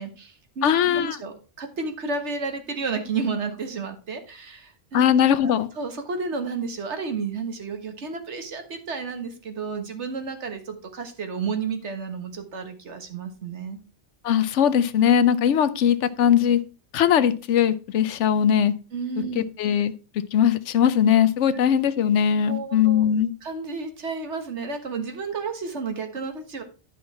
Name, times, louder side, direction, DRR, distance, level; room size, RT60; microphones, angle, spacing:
voice 1, 0.0-5.1 5.4-13.8 18.9-19.5 21.5-21.6 22.4-23.1 23.4-26.6, right 4 dB, 75° right, 6 dB, 1.7 m, -32 dB
voice 2, 0.6-1.2 4.9-5.7 14.2-16.6 16.9-18.7 19.3-19.9 20.3-23.3, left 9 dB, 85° left, 13 dB, 1.0 m, -20 dB
10.5 x 5.5 x 4.2 m, 0.33 s
omnidirectional pair, 1.2 m